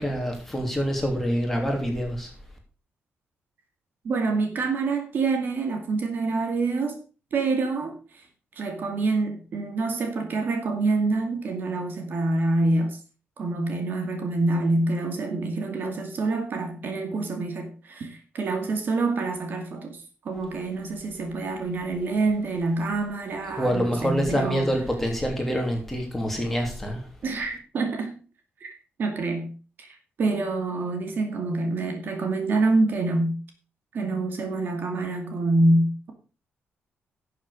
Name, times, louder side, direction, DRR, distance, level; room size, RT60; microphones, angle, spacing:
voice 1, 0.0-2.3 23.6-27.1, equal, 5° left, 1 dB, 3.2 m, -26 dB
voice 2, 4.0-7.0 7.3-8.2 8.6-13.0 13.4-20.0 20.2-24.7 27.2-28.2 28.6-28.7 29.0-29.5 29.8-29.9 30.2-33.3 33.9-36.1, right 2 dB, 50° right, 5 dB, 2.3 m, -26 dB
12.0 x 7.3 x 5.1 m, 0.35 s
cardioid pair, 145°, 4 cm